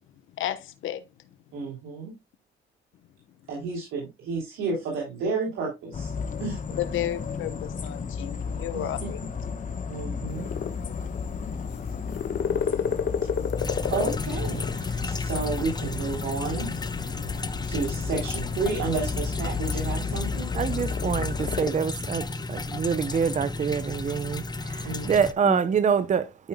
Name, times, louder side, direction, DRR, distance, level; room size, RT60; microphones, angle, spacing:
voice 1, 0.4-1.0 6.8-9.2 25.4-25.6, left 12 dB, 80° left, 1.0 m, -32 dB
voice 2, 1.5-2.1 3.5-6.1 6.4-6.6 8.7-9.3 9.9-10.5 12.6-12.8 13.9-16.7 17.7-20.5 24.8-25.1, right 4 dB, 85° right, 3.2 m, -31 dB
sound 1, 5.9-21.6, left 5 dB, 40° left, 1.1 m, -33 dB
Frog Croaking (UK Common Frog), 10.3-21.8, left 7 dB, 60° left, 1.4 m, -34 dB
sound 2, 13.6-25.3, left 3 dB, 20° left, 0.8 m, -34 dB
voice 3, 20.5-26.5, right 7 dB, 40° right, 0.7 m, -26 dB
12.0 x 5.5 x 2.3 m
cardioid pair, 90°, 20 cm